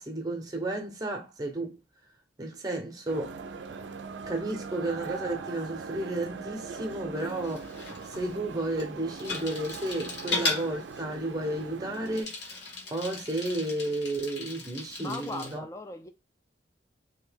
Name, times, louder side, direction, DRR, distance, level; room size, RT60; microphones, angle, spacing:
voice 1, 0.0-1.8 2.4-3.3 4.3-12.3 12.9-15.6, right 1 dB, 20° right, 0.7 m, -32 dB
sound 1, 3.1-12.2, right 4 dB, 85° right, 0.4 m, -41 dB
Bicycle, 7.2-15.6, left 3 dB, 75° left, 1.2 m, -37 dB
voice 2, 15.0-16.1, left 2 dB, 15° left, 0.4 m, -38 dB
3.1 x 2.8 x 3.4 m
head